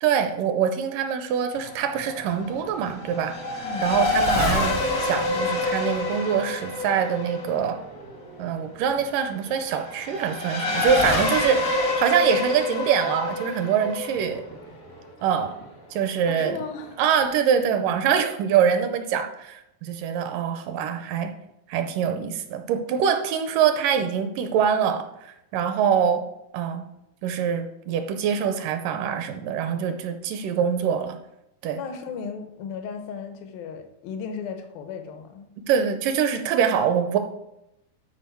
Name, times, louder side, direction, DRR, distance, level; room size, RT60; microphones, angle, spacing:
voice 1, 0.0-7.8 8.4-14.4 15.2-15.6 15.9-16.6 17.0-21.3 21.7-26.2 26.5-26.9 27.2-31.2 31.6-31.8 35.7-37.2, right 7 dB, 80° right, 8 dB, 2.1 m, -24 dB
Race car auto racing / Accelerating revving vroom, 1.5-15.6, left 2 dB, 65° left, 0.8 m, -27 dB
voice 2, 3.6-4.0 16.3-17.0 31.7-35.5, left 6 dB, 85° left, 6 dB, 2.7 m, -35 dB
12.5 x 4.8 x 4.5 m, 0.84 s
omnidirectional pair, 4.1 m